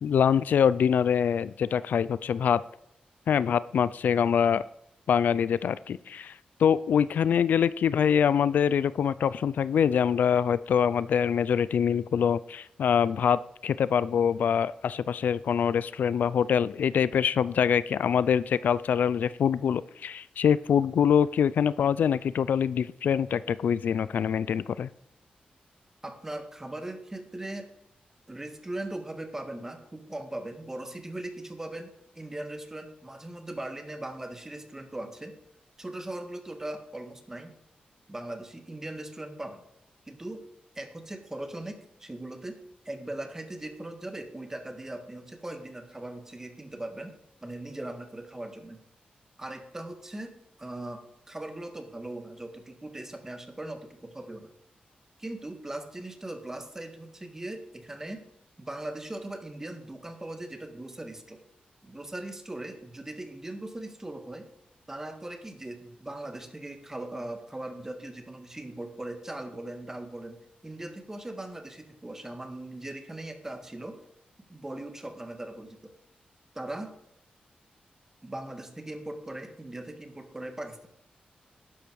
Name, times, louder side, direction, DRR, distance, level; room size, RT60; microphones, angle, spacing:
voice 1, 0.0-2.6 3.3-4.6 5.1-6.3 6.6-24.9, left 8 dB, 85° left, 18 dB, 0.4 m, -24 dB
voice 2, 26.0-27.7 28.3-35.3 35.8-37.6 38.1-39.6 40.1-40.4 40.8-42.6 42.9-47.1 47.4-48.8 49.4-50.3 50.6-54.5 55.2-58.2 58.6-61.4 61.8-64.5 64.9-70.4 70.6-74.0 74.5-75.9 76.6-76.9 78.2-80.9, right 1 dB, 15° right, 6 dB, 1.7 m, -39 dB
12.0 x 10.0 x 4.7 m, 0.78 s
wide cardioid pair, 130°, 3 cm